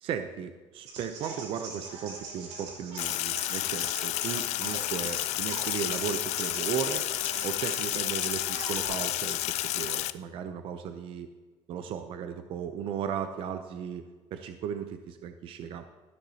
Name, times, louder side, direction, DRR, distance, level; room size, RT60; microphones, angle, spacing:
voice 1, 0.0-7.1 7.4-11.3 11.7-15.8, right 8 dB, 50° right, 8 dB, 0.5 m, -36 dB
sound 1, 0.9-8.9, right 4 dB, 85° right, 2.6 m, -43 dB
Sink (filling or washing), 3.0-10.1, left 16 dB, 70° left, 0.4 m, -31 dB
13.0 x 10.5 x 2.8 m, 1.4 s
cardioid pair, 175°, 12 cm